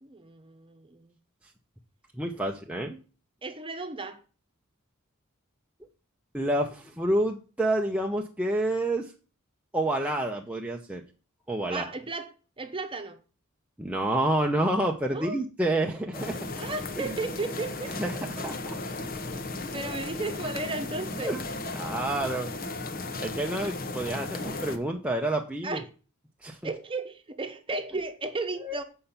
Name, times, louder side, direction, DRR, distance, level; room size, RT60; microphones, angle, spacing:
voice 1, 0.0-1.1 3.4-4.2 11.7-12.3 12.6-13.2 15.1-15.4 16.6-18.1 19.7-21.4 25.6-25.9 26.6-28.8, right 3 dB, 25° right, 1.0 m, -34 dB
voice 2, 2.1-3.0 6.3-9.1 9.7-11.0 11.5-11.8 13.8-16.5 17.0-17.1 18.0-18.8 21.2-21.4 21.8-22.5 23.2-25.8 26.4-26.6 28.6-28.8, right 1 dB, 5° right, 0.7 m, -28 dB
sound 1, 16.1-24.8, left 2 dB, 45° left, 1.0 m, -35 dB
8.5 x 5.5 x 5.7 m
head